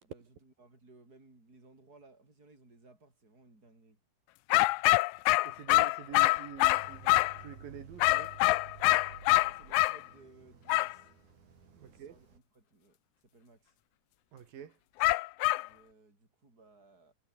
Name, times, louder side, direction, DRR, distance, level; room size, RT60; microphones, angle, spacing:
voice 1, 0.0-4.0 9.4-11.1 11.8-13.0 13.2-13.7 15.6-17.1, right 3 dB, 25° right, 7.4 m, -60 dB
sound 1, 4.5-7.4 8.0-10.0 10.7-10.9 15.0-15.7, left 20 dB, 90° left, 1.7 m, -25 dB
voice 2, 5.4-8.3 11.7-12.2 14.3-14.7, right 8 dB, 85° right, 4.3 m, -47 dB
sound 2, 6.7-12.4, right 5 dB, 60° right, 5.6 m, -53 dB
omnidirectional pair, 3.9 m